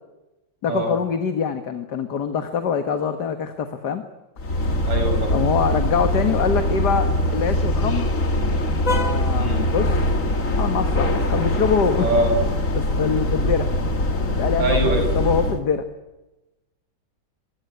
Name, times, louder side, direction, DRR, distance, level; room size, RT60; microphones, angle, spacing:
voice 1, 0.6-4.0 5.3-8.1 8.9-10.1 10.6-12.1 12.7-13.7 14.4-15.8, left 6 dB, 60° left, 7 dB, 2.2 m, -24 dB
sound 1, 4.4-15.6, left 1 dB, 45° left, 2.7 m, -22 dB
voice 2, 4.9-5.3 9.4-9.7 12.0-12.3 14.6-15.1, right 1 dB, 75° right, 4 dB, 6.8 m, -22 dB
23.5 x 23.0 x 9.5 m, 1.0 s
omnidirectional pair, 2.0 m